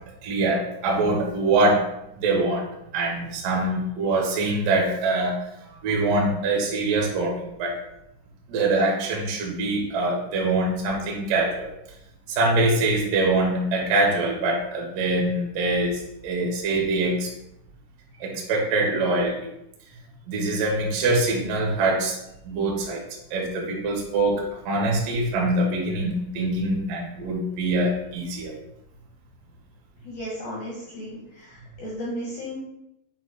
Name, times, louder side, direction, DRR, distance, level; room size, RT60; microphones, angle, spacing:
voice 1, 0.2-1.8 2.2-2.7 2.9-5.4 5.8-7.8 8.5-11.7 12.3-17.3 18.2-19.3 20.3-22.1 22.5-23.0 23.3-28.5, right 2 dB, 75° right, -2 dB, 2.0 m, -24 dB
voice 2, 30.0-32.6, equal, 80° left, -5 dB, 2.1 m, -34 dB
8.3 x 2.9 x 4.1 m, 0.83 s
omnidirectional pair, 5.7 m